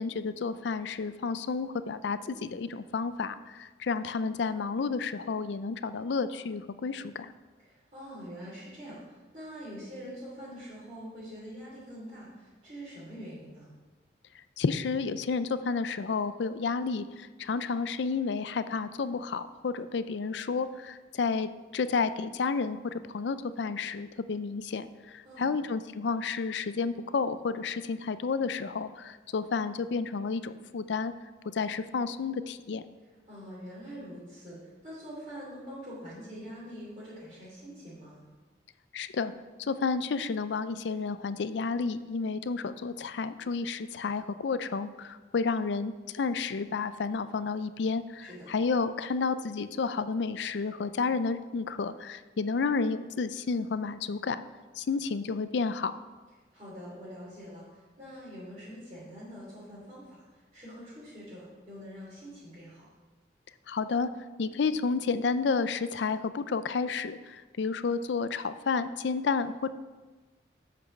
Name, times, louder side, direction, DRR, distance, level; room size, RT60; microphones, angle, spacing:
voice 1, 0.0-7.3 14.6-31.1 31.5-32.8 38.9-39.3 39.6-54.4 54.8-56.0 63.7-64.1 64.4-69.7, left 4 dB, 75° left, 13 dB, 0.4 m, -31 dB
voice 2, 7.6-13.7 25.2-25.5 33.3-38.2 48.3-48.5 56.5-62.8, equal, 35° right, -10 dB, 3.0 m, -44 dB
8.3 x 6.0 x 6.0 m, 1.3 s
head